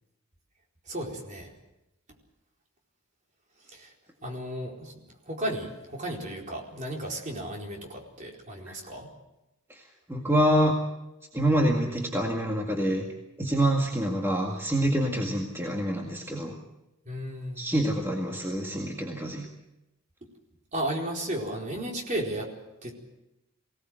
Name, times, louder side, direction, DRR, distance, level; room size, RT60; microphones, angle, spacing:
voice 1, 0.9-1.5 3.7-3.9 4.2-4.9 5.2-9.1 17.1-17.6 20.7-22.5 22.8-22.9, right 1 dB, 35° right, 0 dB, 4.4 m, -34 dB
voice 2, 10.1-10.7 11.3-13.1 13.4-16.6 17.6-19.5, right 1 dB, 10° right, 0 dB, 2.0 m, -26 dB
24.0 x 18.0 x 7.8 m, 0.95 s
head